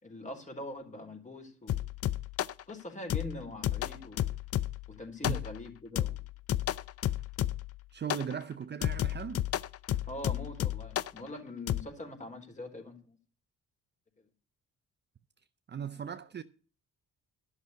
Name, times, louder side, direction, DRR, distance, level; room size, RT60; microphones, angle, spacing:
voice 1, 0.0-1.8 2.7-4.3 5.0-6.2 10.1-13.2, left 1 dB, 25° left, 4.0 m, -43 dB
sound 1, 1.7-2.6 3.1-4.9 5.2-5.7 5.9-7.8 8.1-8.3 8.8-11.2 11.7-11.8, left 12 dB, 50° left, 0.5 m, -32 dB
voice 2, 7.9-9.5 15.7-16.4, right 7 dB, 35° right, 0.6 m, -38 dB
12.0 x 6.5 x 8.3 m
cardioid pair, 90°, 30 cm